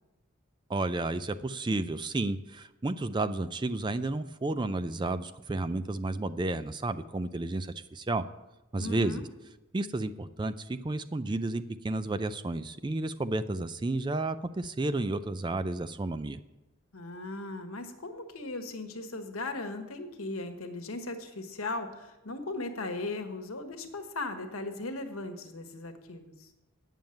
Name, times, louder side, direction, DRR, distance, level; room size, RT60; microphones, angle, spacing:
voice 1, 0.7-8.3 8.7-9.2 9.7-16.4, right 2 dB, 20° right, 12 dB, 0.3 m, -32 dB
voice 2, 8.8-9.2 16.9-26.5, left 2 dB, 85° left, 6 dB, 1.3 m, -38 dB
9.1 x 7.2 x 7.7 m, 1.0 s
head